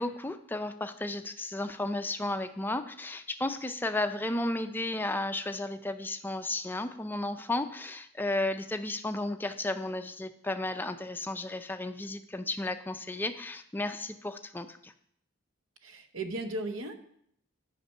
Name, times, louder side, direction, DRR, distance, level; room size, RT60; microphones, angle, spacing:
voice 1, 0.0-14.9, left 2 dB, 10° left, 8 dB, 0.4 m, -33 dB
voice 2, 15.8-16.9, right 2 dB, 75° right, 8 dB, 0.9 m, -36 dB
8.0 x 5.7 x 5.4 m, 0.69 s
head